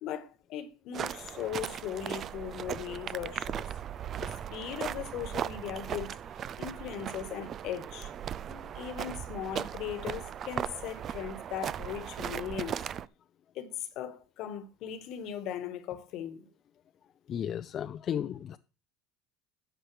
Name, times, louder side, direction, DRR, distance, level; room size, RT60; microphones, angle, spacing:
voice 1, 0.0-3.7 4.2-6.2 6.6-8.1 8.7-12.8 13.5-16.5, left 9 dB, 60° left, 1.4 m, -38 dB
sound 1, 0.9-13.1, right 9 dB, 40° right, 0.4 m, -38 dB
voice 2, 17.3-18.6, left 9 dB, 40° left, 0.5 m, -34 dB
12.5 x 7.9 x 3.3 m
supercardioid pair, 100°, 0 cm